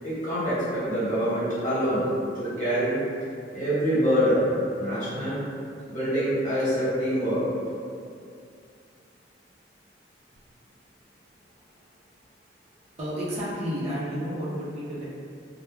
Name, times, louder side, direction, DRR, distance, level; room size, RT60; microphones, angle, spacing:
voice 1, 0.0-2.0 2.3-3.0 3.5-4.5 4.8-5.4 5.9-7.4, equal, 45° left, -12 dB, 1.2 m, -25 dB
voice 2, 13.0-15.0, equal, 35° right, -9 dB, 0.6 m, -31 dB
2.2 x 2.2 x 3.2 m, 2.4 s
head